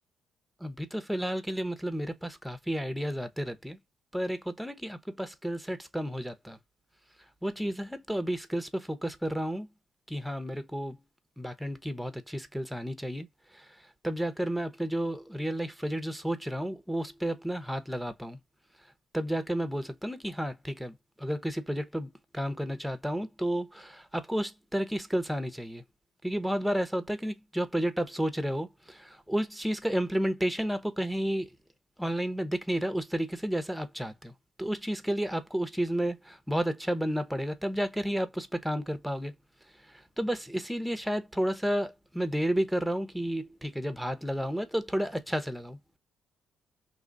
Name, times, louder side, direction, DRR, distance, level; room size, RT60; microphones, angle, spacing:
voice 1, 0.6-3.8 4.1-6.6 7.4-9.7 10.1-11.0 11.4-13.3 14.0-18.4 19.1-25.8 26.2-31.5 32.0-34.3 34.6-39.3 40.2-45.8, equal, ahead, 0.7 m, -31 dB
2.9 x 2.3 x 3.8 m
cardioid pair, 90°, 0 cm